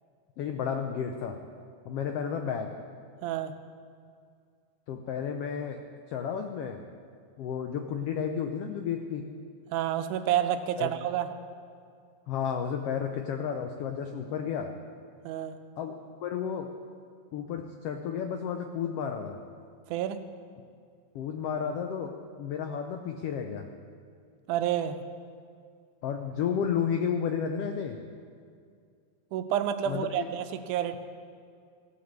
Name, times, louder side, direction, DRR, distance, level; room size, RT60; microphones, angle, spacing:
voice 1, 0.4-1.4 1.8-2.7 4.9-5.8 6.1-6.8 7.4-9.2 10.8-10.9 12.3-14.7 15.8-15.9 16.2-16.7 17.3-19.4 21.1-22.1 22.4-23.7 26.0-28.0 29.9-30.3, left 7 dB, 90° left, 5 dB, 1.3 m, -32 dB
voice 2, 3.2-3.5 9.7-11.3 15.2-15.6 19.9-20.2 24.5-25.0 29.3-31.0, right 10 dB, 85° right, 9 dB, 2.1 m, -29 dB
16.5 x 6.1 x 7.3 m, 2.2 s
omnidirectional pair, 3.5 m